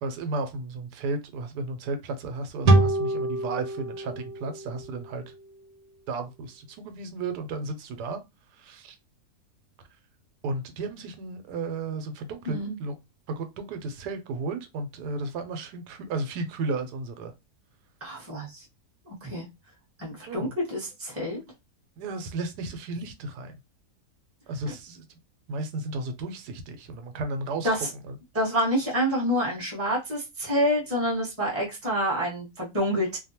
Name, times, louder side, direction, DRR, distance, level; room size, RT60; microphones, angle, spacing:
voice 1, 0.0-5.3 6.1-8.2 8.5-9.0 10.4-12.9 13.3-17.3 20.3-20.5 22.0-23.5 24.5-25.2 25.5-27.7 28.1-28.2, right 3 dB, 85° right, 1.2 m, -33 dB
sound 1, 2.7-6.0, right 2 dB, 70° right, 1.1 m, -26 dB
voice 2, 12.5-12.8 18.0-18.6 19.1-19.4 20.0-21.4 27.6-27.9 28.3-33.2, equal, 10° right, 0.9 m, -27 dB
2.7 x 2.2 x 2.8 m
omnidirectional pair, 1.7 m